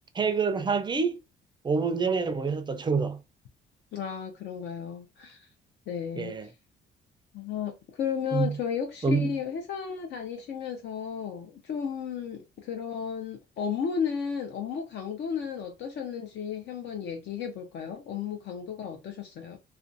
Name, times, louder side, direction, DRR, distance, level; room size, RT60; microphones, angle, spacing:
voice 1, 0.1-1.2 1.6-3.2 6.2-6.5 8.3-8.6 9.0-9.3, right 4 dB, 25° right, 0.4 m, -26 dB
voice 2, 3.9-5.5 5.9-6.5 7.3-19.6, left 7 dB, 65° left, 0.5 m, -34 dB
2.5 x 2.2 x 2.5 m
cardioid pair, 90°, 20 cm